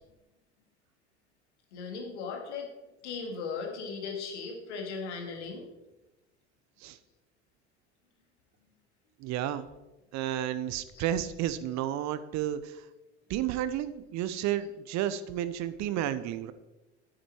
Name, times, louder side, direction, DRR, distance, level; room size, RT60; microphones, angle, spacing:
voice 1, 1.7-2.7 3.0-5.7 10.9-11.1, left 5 dB, 75° left, 2 dB, 2.5 m, -37 dB
voice 2, 9.2-9.7 10.1-12.8 13.3-16.5, right 11 dB, 50° right, 14 dB, 0.9 m, -32 dB
10.0 x 8.9 x 4.5 m, 1.0 s
hypercardioid pair, 65°, 35 cm